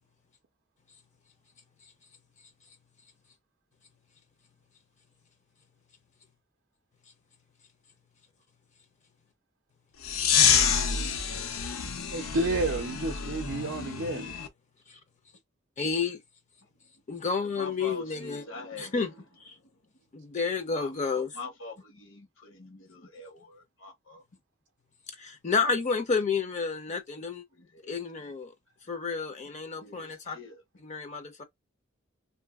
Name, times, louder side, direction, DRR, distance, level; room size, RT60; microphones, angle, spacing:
sound 1, 10.0-14.5, left 7 dB, 85° left, 0.6 m, -27 dB
voice 1, 12.1-14.3, right 2 dB, 55° right, 0.4 m, -30 dB
voice 2, 15.8-16.2 17.1-18.4 18.8-19.1 19.4-19.6 20.1-21.4 25.2-27.4 27.9-28.5 28.9-30.4 30.8-31.4, left 5 dB, 35° left, 0.5 m, -30 dB
voice 3, 17.4-19.0 20.7-24.2 27.5-28.0 29.8-30.6, left 3 dB, 70° left, 1.1 m, -44 dB
2.6 x 2.6 x 2.3 m
head